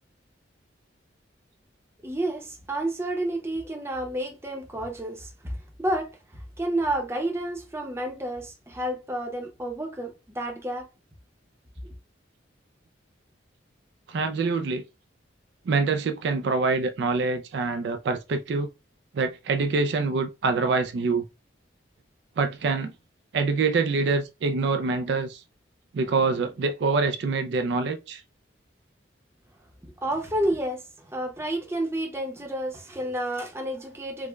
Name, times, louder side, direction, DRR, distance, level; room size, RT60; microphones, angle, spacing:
voice 1, 2.0-10.9 11.8-11.9 30.0-34.3, right 1 dB, 15° right, 0.7 m, -30 dB
voice 2, 14.1-14.8 15.7-18.7 19.1-21.2 22.4-22.9 23.3-25.4 25.9-28.2, right 4 dB, 65° right, 0.3 m, -25 dB
4.8 x 2.1 x 2.2 m
head